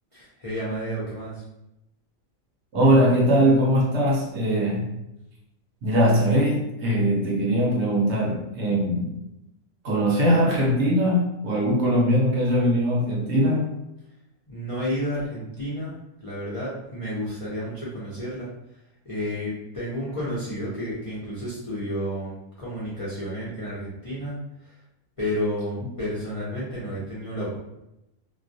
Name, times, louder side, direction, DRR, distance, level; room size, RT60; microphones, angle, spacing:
voice 1, 0.1-1.4 14.5-15.9 16.2-18.5 19.0-24.4 25.2-27.6, equal, 50° left, -8 dB, 0.4 m, -31 dB
voice 2, 2.7-4.8 5.8-9.2 9.8-13.7, equal, 65° right, -3 dB, 0.8 m, -21 dB
2.2 x 2.2 x 2.5 m, 0.88 s
omnidirectional pair, 1.4 m